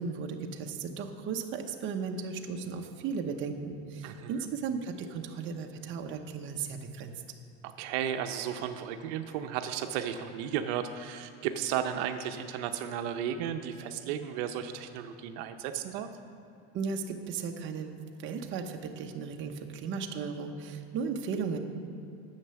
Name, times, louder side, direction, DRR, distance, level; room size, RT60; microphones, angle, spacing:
voice 1, 0.0-7.1 16.7-21.6, right 5 dB, 40° right, 3 dB, 0.8 m, -36 dB
voice 2, 4.0-4.5 7.6-16.1, right 9 dB, 75° right, 7 dB, 0.7 m, -34 dB
9.7 x 6.6 x 7.0 m, 2.8 s
cardioid pair, 150°, 31 cm